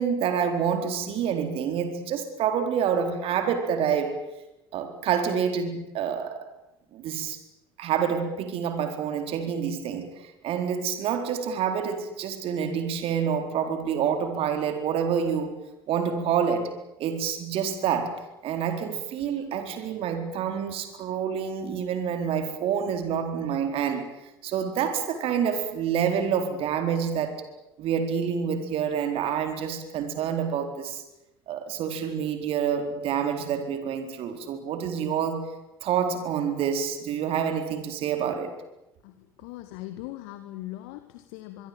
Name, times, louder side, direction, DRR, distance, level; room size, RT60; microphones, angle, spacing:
voice 1, 0.0-4.2 4.7-6.5 6.9-7.4 7.8-15.6 15.9-24.1 24.4-27.4 27.8-31.0 31.5-35.5 35.8-38.5, right 7 dB, 55° right, 4.2 m, -27 dB
voice 2, 39.0-41.7, left 16 dB, 65° left, 1.8 m, -40 dB
24.5 x 23.5 x 8.9 m
figure-of-eight pair, 60°, 12 cm